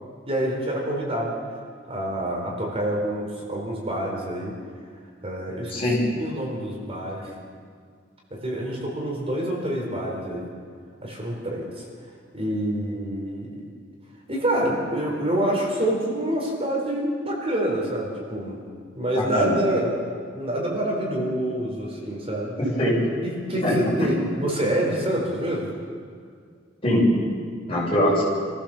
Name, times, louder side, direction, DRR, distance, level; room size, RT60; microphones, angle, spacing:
voice 1, 0.3-1.3 1.9-4.6 5.2-5.8 6.2-7.3 8.3-10.5 11.0-11.8 12.3-13.6 14.3-18.6 19.0-20.0 20.3-22.5 23.2-25.7, right 1 dB, 30° right, -2 dB, 4.2 m, -27 dB
voice 2, 19.1-19.5 22.6-23.0 23.6-24.1 26.8-27.0 27.7-28.2, left 1 dB, 30° left, -5 dB, 6.8 m, -22 dB
27.0 x 15.0 x 7.3 m, 2.1 s
head